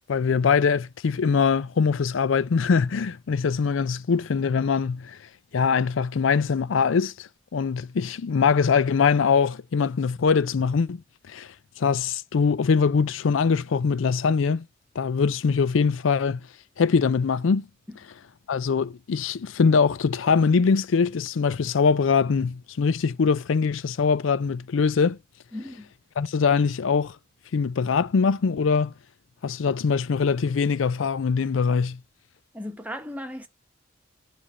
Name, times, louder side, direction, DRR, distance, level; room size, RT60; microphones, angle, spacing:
voice 1, 0.1-5.2 5.5-11.0 11.3-11.5 11.8-14.6 15.0-16.4 16.8-17.6 18.5-25.2 26.2-27.2 27.5-28.9 29.4-32.0, left 5 dB, 85° left, 0.4 m, -22 dB
voice 2, 25.5-25.9 32.5-33.5, left 1 dB, 10° right, 1.3 m, -36 dB
9.9 x 3.3 x 6.2 m
head